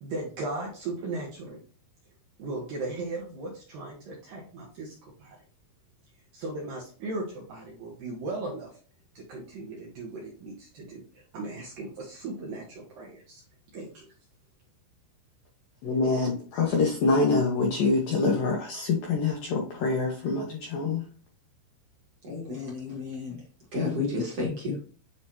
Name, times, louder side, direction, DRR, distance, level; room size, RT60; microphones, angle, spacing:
voice 1, 0.0-1.6 2.4-5.4 6.3-8.7 9.2-13.4 13.7-14.1, right 2 dB, 65° right, -2 dB, 2.3 m, -37 dB
voice 2, 15.8-21.0, left 3 dB, 85° left, -1 dB, 2.0 m, -25 dB
voice 3, 22.2-23.4 23.7-24.8, left 3 dB, 40° right, -4 dB, 2.3 m, -31 dB
10.0 x 3.4 x 2.8 m, 0.43 s
omnidirectional pair, 5.5 m